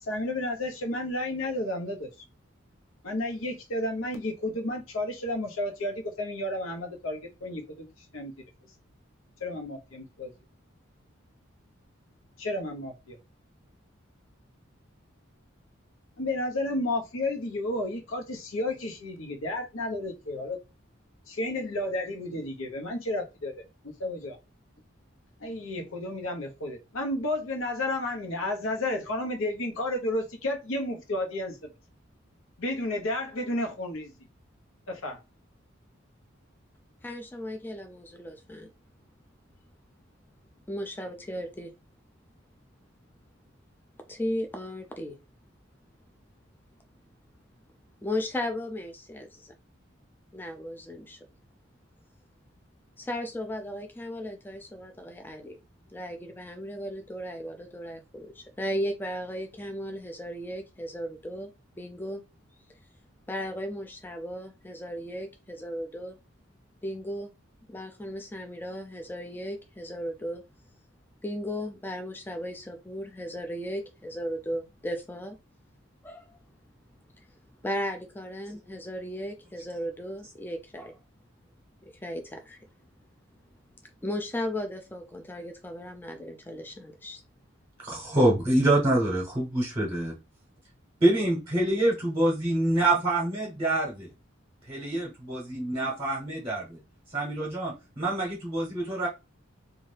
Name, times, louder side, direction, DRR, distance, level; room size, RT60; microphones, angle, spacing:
voice 1, 0.0-2.1 3.0-8.3 9.4-10.3 12.4-13.2 16.2-20.6 21.3-23.6 24.0-24.4 25.4-31.7 32.6-34.1 34.9-35.2, left 1 dB, 85° left, 0.8 m, -32 dB
voice 2, 37.0-38.7 40.7-41.7 44.1-45.2 48.0-49.5 50.3-51.2 53.0-55.6 55.9-61.5 61.8-62.2 63.3-66.2 66.8-67.3 67.7-70.4 71.2-75.4 76.0-76.4 77.6-81.0 81.8-82.6 84.0-87.2, equal, 10° left, 0.3 m, -36 dB
voice 3, 87.8-90.1 91.0-94.1 94.7-96.8 97.1-99.1, right 1 dB, 25° right, 0.8 m, -26 dB
2.6 x 2.3 x 3.2 m
head